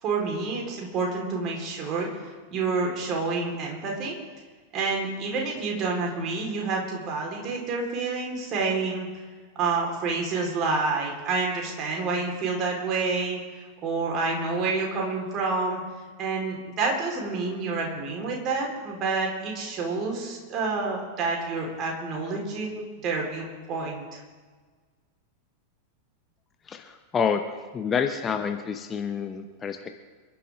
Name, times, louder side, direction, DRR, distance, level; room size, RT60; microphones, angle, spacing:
voice 1, 0.0-4.1 4.7-9.1 9.5-13.4 13.8-15.8 16.2-24.2, right 4 dB, 35° right, -1 dB, 4.5 m, -28 dB
voice 2, 26.7-27.4 27.7-29.9, left 7 dB, 20° left, 6 dB, 1.0 m, -28 dB
27.5 x 11.5 x 3.8 m, 1.5 s
figure-of-eight pair, 90°, 0 cm